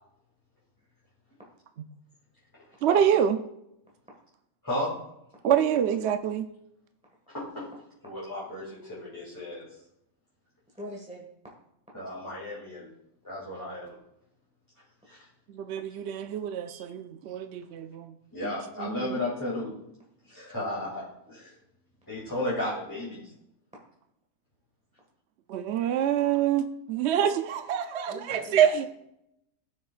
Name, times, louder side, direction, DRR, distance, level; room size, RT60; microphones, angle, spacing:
voice 1, 2.8-3.4 5.4-6.5 15.5-18.1 18.4-19.2 25.5-28.8, right 9 dB, 65° right, 8 dB, 0.7 m, -26 dB
voice 2, 7.3-7.7 8.0-9.6 11.9-12.9 13.2-13.9 15.1-15.3 18.3-19.7 20.3-21.5 22.1-23.3 28.3-28.4, left 1 dB, 15° left, -8 dB, 2.5 m, -34 dB
voice 3, 10.7-11.3 16.7-17.0 28.1-28.9, equal, 5° right, -3 dB, 1.5 m, -42 dB
16.0 x 6.6 x 2.4 m, 0.81 s
omnidirectional pair, 1.6 m